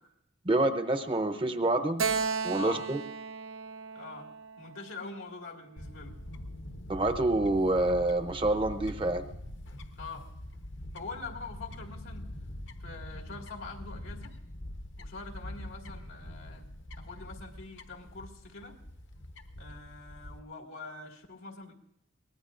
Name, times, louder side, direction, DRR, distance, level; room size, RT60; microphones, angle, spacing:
voice 1, 0.5-2.0 2.4-3.0 6.9-9.2, right 2 dB, 25° right, 9 dB, 0.7 m, -27 dB
Keyboard (musical), 2.0-5.4, right 5 dB, 90° right, 0.9 m, -35 dB
voice 2, 2.5-2.9 3.9-4.3 4.6-6.2 10.0-10.3 10.9-12.3 12.8-14.3 15.0-16.7 17.0-18.7 19.6-21.7, left 4 dB, 90° left, 1 dB, 2.1 m, -44 dB
Fowl / Bird, 5.8-20.4, left 1 dB, 65° left, 1.0 m, -44 dB
23.0 x 18.5 x 2.5 m, 0.75 s
head